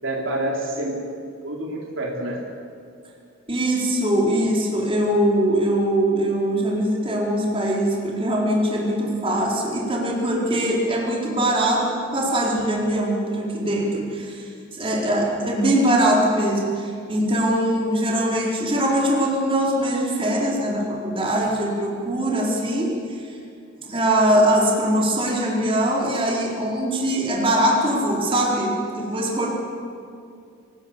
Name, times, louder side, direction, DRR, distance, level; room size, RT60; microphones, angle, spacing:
voice 1, 0.0-1.0 1.4-2.4, right 1 dB, 65° right, -1 dB, 3.8 m, -27 dB
voice 2, 3.5-23.4 23.9-29.5, right 1 dB, 25° right, -3 dB, 4.1 m, -22 dB
24.5 x 18.5 x 7.3 m, 2.4 s
head